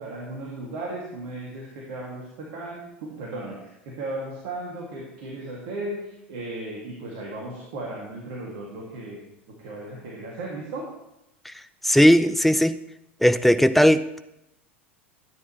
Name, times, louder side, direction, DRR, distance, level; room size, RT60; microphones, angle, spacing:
voice 1, 0.0-9.2 9.5-10.9, right 2 dB, 50° right, -4 dB, 2.4 m, -36 dB
voice 2, 11.8-12.8 13.2-14.2, equal, ahead, 12 dB, 0.5 m, -18 dB
13.5 x 9.6 x 3.2 m, 0.87 s
figure-of-eight pair, 80°, 7 cm